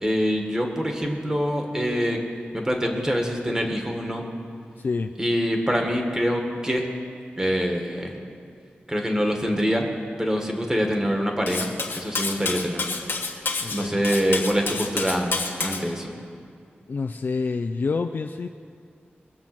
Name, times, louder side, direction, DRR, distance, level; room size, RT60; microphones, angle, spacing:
voice 1, 0.0-2.2 2.5-4.3 5.2-6.9 7.4-8.1 8.9-9.9 10.2-12.8 13.7-16.1, equal, 15° right, 2 dB, 1.7 m, -25 dB
voice 2, 4.8-5.1 13.6-14.0 16.9-18.5, left 4 dB, 55° left, 6 dB, 0.4 m, -28 dB
Cutlery silverware, 11.5-15.8, left 4 dB, 80° left, 1.4 m, -29 dB
21.5 x 7.4 x 6.0 m, 2.3 s
wide cardioid pair, 115°, 4 cm